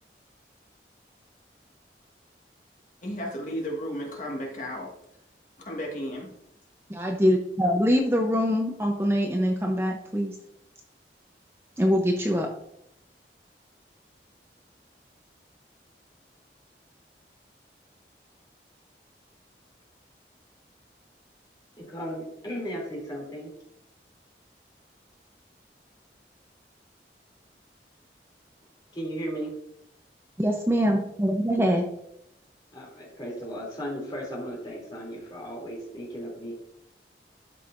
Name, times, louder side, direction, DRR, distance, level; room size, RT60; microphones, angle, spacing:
voice 1, 3.0-4.9 5.7-6.3, equal, 45° left, -1 dB, 1.8 m, -33 dB
voice 2, 6.9-10.4 11.8-12.5 30.4-31.8, equal, 15° right, 1 dB, 0.7 m, -24 dB
voice 3, 21.8-23.6 28.9-29.6 32.7-36.5, equal, 25° left, -3 dB, 2.8 m, -35 dB
12.5 x 5.4 x 2.5 m, 0.77 s
head